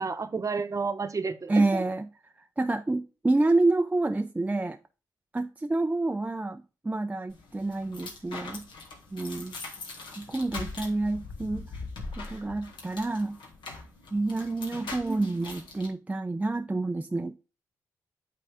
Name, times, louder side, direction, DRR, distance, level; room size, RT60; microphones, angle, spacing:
voice 1, 0.0-1.8 15.0-15.4, right 4 dB, 40° right, 0.9 m, -31 dB
voice 2, 1.5-2.1 2.6-4.8 5.3-8.6 9.1-9.6 10.2-11.7 12.2-13.4 14.1-17.4, right 2 dB, 20° right, 0.5 m, -28 dB
sound 1, 7.3-15.9, left 3 dB, 70° left, 1.5 m, -42 dB
8.2 x 3.8 x 3.5 m
hypercardioid pair, 40°, 8 cm